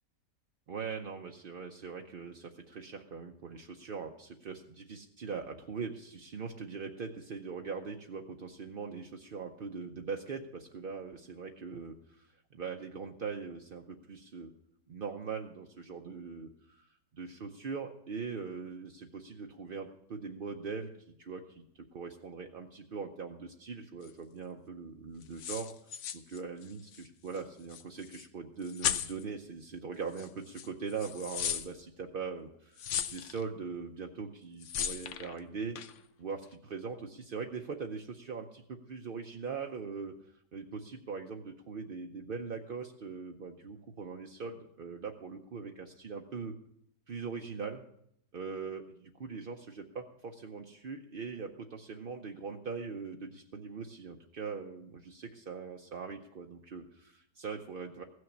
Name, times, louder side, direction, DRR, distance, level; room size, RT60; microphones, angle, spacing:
voice 1, 0.7-14.5 14.9-21.6 21.9-25.7 26.1-35.8 36.2-40.2 40.5-46.5 47.1-47.8 48.3-58.0, right 5 dB, 55° right, 3 dB, 0.6 m, -41 dB
sound 1, 24.0-24.1 25.2-27.1 27.3-27.4 27.7-28.3 28.6-29.2 30.1-30.3 30.5-31.7 32.8-33.4 34.6-35.3 35.7-36.0, left 9 dB, 60° left, 0.8 m, -36 dB
15.0 x 6.4 x 7.1 m, 0.73 s
omnidirectional pair, 1.8 m